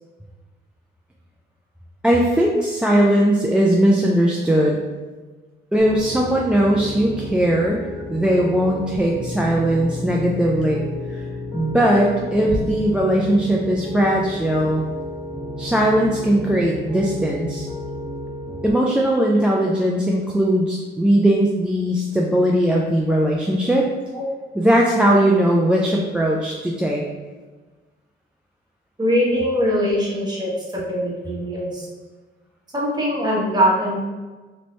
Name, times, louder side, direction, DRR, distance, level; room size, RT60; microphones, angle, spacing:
voice 1, 2.0-4.8 5.7-7.8 8.1-10.8 11.1-11.2 11.5-14.8 15.6-17.7 18.6-23.9 24.6-27.0, right 1 dB, 5° right, -2 dB, 0.3 m, -19 dB
Piano, 5.8-18.7, left 1 dB, 20° left, 1.2 m, -32 dB
voice 2, 29.0-31.9 32.7-34.0, equal, 20° right, -5 dB, 1.1 m, -22 dB
3.0 x 2.6 x 3.1 m, 1.3 s
cardioid pair, 90°, 20 cm